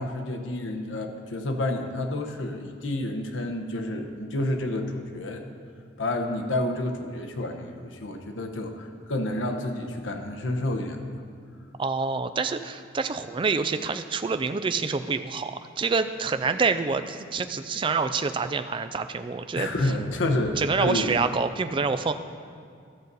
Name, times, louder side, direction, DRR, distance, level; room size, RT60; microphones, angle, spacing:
voice 1, 0.0-5.4 6.0-11.1 19.5-21.2, left 1 dB, 85° left, 4 dB, 0.9 m, -29 dB
voice 2, 11.8-19.7 20.6-22.1, right 4 dB, 25° right, 9 dB, 0.3 m, -27 dB
13.5 x 6.7 x 4.0 m, 2.2 s
head